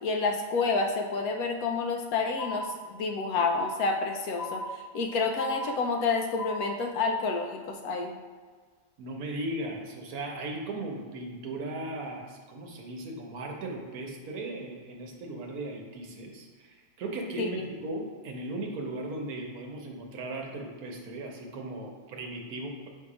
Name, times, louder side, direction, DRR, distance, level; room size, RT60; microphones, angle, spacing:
voice 1, 0.0-8.1 17.4-17.5, left 4 dB, 70° left, 3 dB, 1.0 m, -29 dB
sound 1, 2.4-3.1 3.4-4.1 4.4-5.1 5.4-6.1 6.4-7.1, left 2 dB, 40° left, 1.2 m, -37 dB
voice 2, 9.0-22.9, right 2 dB, 65° right, 1 dB, 1.2 m, -37 dB
7.3 x 2.8 x 4.8 m, 1.5 s
omnidirectional pair, 1.7 m